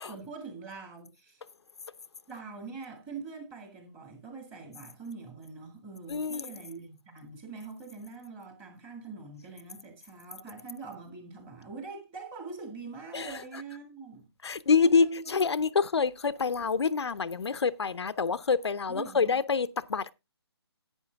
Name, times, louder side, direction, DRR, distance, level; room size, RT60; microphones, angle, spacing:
voice 1, 0.0-1.4 2.3-14.2 14.7-15.4 18.9-19.3, right 4 dB, 10° right, 2.1 m, -43 dB
voice 2, 6.1-6.5 13.1-13.3 14.4-20.1, left 5 dB, 75° left, 0.7 m, -26 dB
11.0 x 9.1 x 3.5 m
hypercardioid pair, 165°, 14 cm